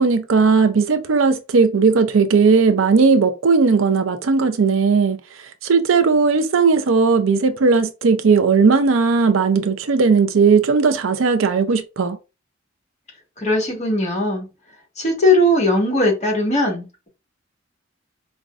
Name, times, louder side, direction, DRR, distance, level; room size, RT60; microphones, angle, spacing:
voice 1, 0.0-5.2 5.6-12.2, right 4 dB, 75° right, 0.5 m, -16 dB
voice 2, 13.4-14.5 15.0-17.1, left 1 dB, 35° left, 1.6 m, -19 dB
5.1 x 2.3 x 2.4 m
head